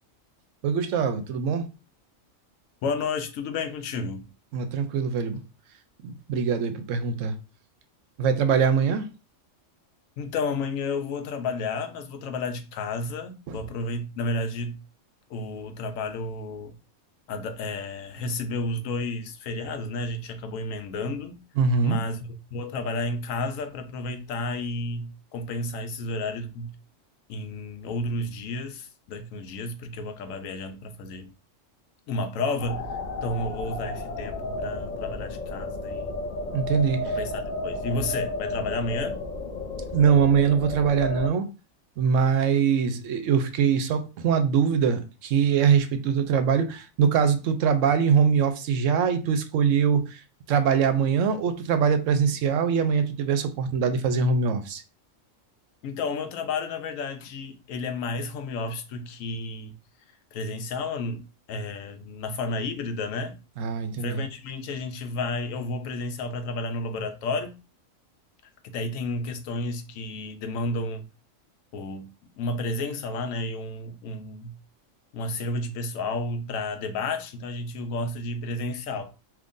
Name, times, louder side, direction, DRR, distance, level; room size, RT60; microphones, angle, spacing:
voice 1, 0.6-1.7 4.5-5.4 6.0-7.4 8.2-9.1 13.5-13.6 21.6-22.0 36.5-37.1 39.9-41.5 42.0-50.2 50.5-54.8 63.6-64.2, right 6 dB, 75° right, 0.9 m, -23 dB
voice 2, 2.8-4.2 10.2-14.8 15.3-16.7 17.3-21.4 21.8-26.7 27.3-31.3 32.1-32.8 33.2-36.2 37.0-39.2 55.8-59.7 60.3-63.4 64.0-67.6 68.6-71.1 71.7-72.1 72.4-74.6 75.1-79.1, left 2 dB, 90° left, 1.0 m, -31 dB
sound 1, 32.6-41.3, left 2 dB, 55° left, 0.6 m, -32 dB
3.6 x 2.9 x 2.5 m
omnidirectional pair, 1.3 m